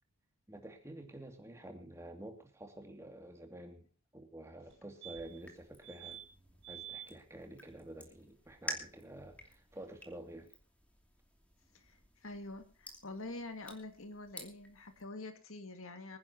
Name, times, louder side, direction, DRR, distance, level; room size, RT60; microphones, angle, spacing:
voice 1, 0.5-3.9 4.1-6.2 6.7-10.5, right 1 dB, 15° right, 4 dB, 2.5 m, -49 dB
sound 1, 4.7-4.8 5.0-5.5 5.8-6.2 6.6-7.1 9.5-9.6 9.7-9.8, right 11 dB, 55° right, 2.5 m, -48 dB
sound 2, 5.1-15.0, equal, 5° left, 2.7 m, -51 dB
voice 2, 11.7-16.2, left 2 dB, 65° left, 7 dB, 2.1 m, -46 dB
25.5 x 10.5 x 2.9 m, 0.37 s
head